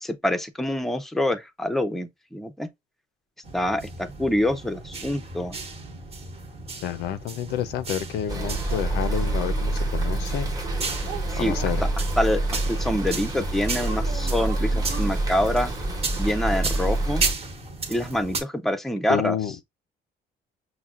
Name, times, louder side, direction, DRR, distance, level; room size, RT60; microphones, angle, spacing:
voice 1, 0.0-2.7 3.5-5.6 11.3-11.5 12.2-15.7 16.2-17.2 17.9-19.4, left 1 dB, ahead, 0.4 m, -26 dB
sound 1, 3.4-18.4, right 3 dB, 35° right, 1.1 m, -35 dB
voice 2, 6.8-10.5 11.4-11.8 19.1-19.6, left 10 dB, 80° left, 0.4 m, -29 dB
sound 2, 8.3-17.3, right 2 dB, 20° right, 1.0 m, -27 dB
sound 3, 10.6-11.9 13.7-15.2, right 6 dB, 75° right, 0.8 m, -39 dB
5.7 x 2.1 x 2.4 m
cardioid pair, 110°, 17 cm